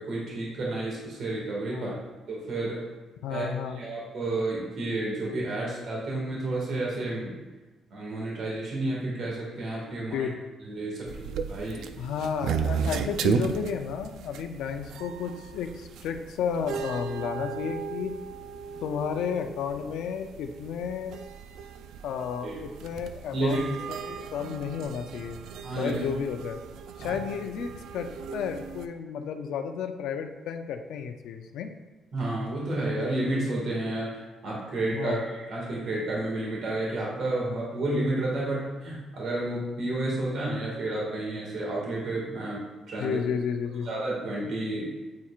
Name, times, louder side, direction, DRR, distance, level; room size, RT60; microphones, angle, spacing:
voice 1, 0.0-1.9 2.3-2.8 3.3-7.3 7.9-10.3 10.7-11.8 12.8-13.1 22.4-22.6 23.3-23.6 25.6-26.0 27.0-27.1 32.1-42.6 42.9-43.2 43.8-44.9, right 2 dB, 65° right, -4 dB, 1.9 m, -31 dB
voice 2, 3.2-3.8 10.1-10.3 12.0-18.1 18.8-21.2 22.0-25.4 25.8-26.6 27.0-31.7 34.9-35.3 43.0-43.9, left 7 dB, 85° left, 6 dB, 0.5 m, -32 dB
sound 1, 11.1-28.9, right 6 dB, 80° right, 0.4 m, -35 dB
9.4 x 4.4 x 2.4 m, 1.2 s
cardioid pair, 90°, 0 cm